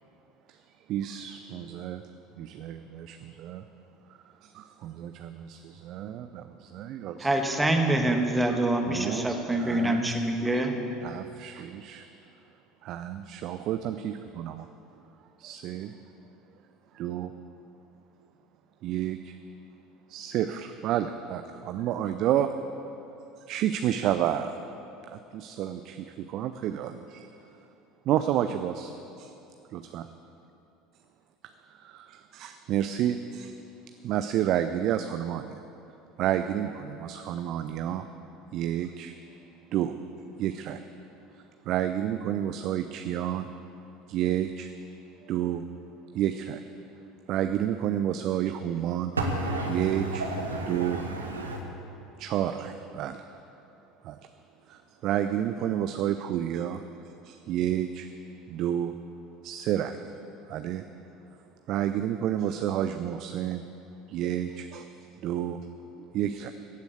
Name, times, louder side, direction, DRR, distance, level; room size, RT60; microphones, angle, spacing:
voice 1, 0.9-2.0 2.4-3.6 4.4-7.4 8.8-9.3 9.5-10.1 11.0-12.1 12.8-14.7 15.4-15.9 16.9-17.3 18.8-19.4 20.1-22.5 23.5-24.5 25.1-27.3 28.1-28.9 29.2-29.3 29.7-30.1 31.7-33.5 34.0-35.6 36.2-38.0 38.5-39.1 39.7-39.9 40.4-40.8 41.3-43.5 44.1-44.7 45.2-45.6 46.1-46.6 47.3-49.2 49.7-50.2 50.7-51.0 52.2-53.2 54.0-54.2 54.7-56.8 57.2-58.1 58.5-58.9 59.4-60.0 60.5-60.8 61.7-63.6 64.1-64.9 65.2-65.7 66.1-66.5, right 11 dB, 50° right, 9 dB, 0.5 m, -30 dB
voice 2, 7.2-10.8, right 1 dB, 10° right, 3 dB, 1.5 m, -25 dB
voice 3, 49.2-51.6, right 2 dB, 80° right, 1 dB, 1.6 m, -31 dB
15.5 x 8.2 x 8.0 m, 2.8 s
figure-of-eight pair, 70°, 0 cm